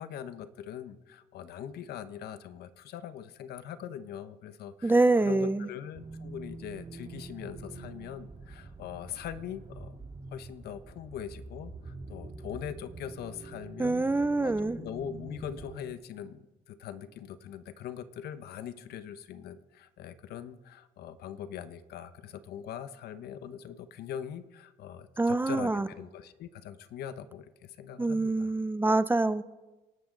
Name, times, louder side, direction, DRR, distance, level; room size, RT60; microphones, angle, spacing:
voice 1, 0.0-10.0 10.3-28.5, left 9 dB, 70° left, 12 dB, 1.1 m, -42 dB
voice 2, 4.8-5.7 13.8-14.8 25.2-25.9 28.0-29.4, right 2 dB, 10° right, 14 dB, 0.6 m, -25 dB
sound 1, 5.9-15.8, right 3 dB, 25° right, 2.3 m, -45 dB
27.5 x 11.5 x 3.9 m, 1.1 s
cardioid pair, 110°, 17 cm